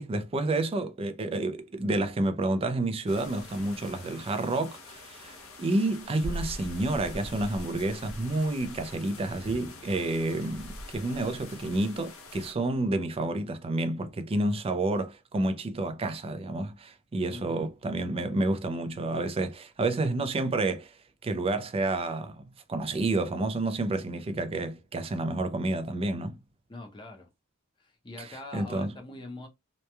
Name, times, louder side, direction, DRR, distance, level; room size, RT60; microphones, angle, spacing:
voice 1, 0.0-20.9 21.2-26.4 28.2-29.0, right 2 dB, 25° right, 0.4 m, -30 dB
sound 1, 3.1-12.5, left 1 dB, 65° left, 0.8 m, -43 dB
voice 2, 17.3-17.7 26.7-27.3 27.8-29.5, left 2 dB, 20° left, 0.7 m, -43 dB
2.9 x 2.2 x 2.2 m
head